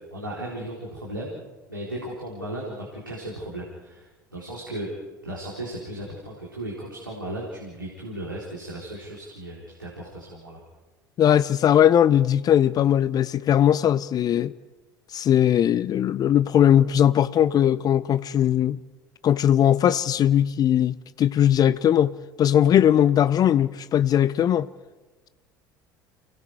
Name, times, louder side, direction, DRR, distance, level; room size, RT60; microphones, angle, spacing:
voice 1, 0.1-1.4 1.7-4.9 5.2-10.6, right 1 dB, 90° right, 4.0 m, -36 dB
voice 2, 11.2-14.5 15.1-18.8 19.2-24.7, left 10 dB, 35° left, 0.7 m, -19 dB
29.5 x 19.5 x 4.8 m
figure-of-eight pair, 65°, 11 cm